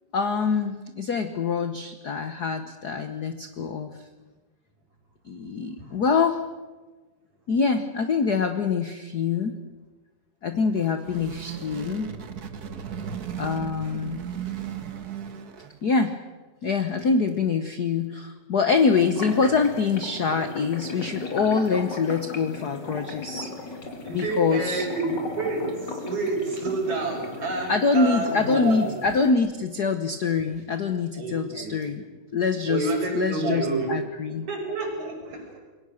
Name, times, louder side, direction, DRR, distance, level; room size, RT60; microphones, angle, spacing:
voice 1, 0.1-3.9 5.2-6.4 7.5-9.6 10.4-12.1 13.4-14.2 15.8-16.1 16.6-23.5 24.1-24.9 27.7-32.0 32.3-34.5, left 5 dB, 65° left, 8 dB, 1.0 m, -25 dB
sound 1, 10.6-15.9, right 8 dB, 45° right, 1.3 m, -36 dB
sound 2, 18.7-29.3, left 3 dB, 35° left, 2.9 m, -37 dB
voice 2, 24.0-28.9 30.4-30.5 31.2-31.8 32.7-34.0 34.3-35.6, right 3 dB, 70° right, 1 dB, 6.7 m, -29 dB
27.5 x 22.5 x 6.5 m, 1.3 s
omnidirectional pair, 3.4 m